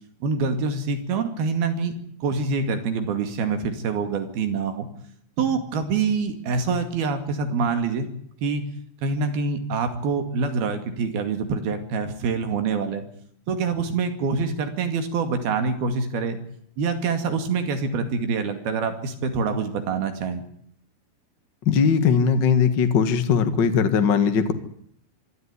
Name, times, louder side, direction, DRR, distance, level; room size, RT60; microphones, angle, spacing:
voice 1, 0.2-2.0 2.2-4.9 5.4-8.1 8.4-8.6 9.0-13.1 13.5-16.4 16.8-20.4, right 4 dB, 75° right, 7 dB, 4.2 m, -25 dB
voice 2, 21.6-24.5, left 6 dB, 45° left, 8 dB, 1.4 m, -19 dB
25.5 x 12.5 x 9.7 m, 0.67 s
omnidirectional pair, 4.4 m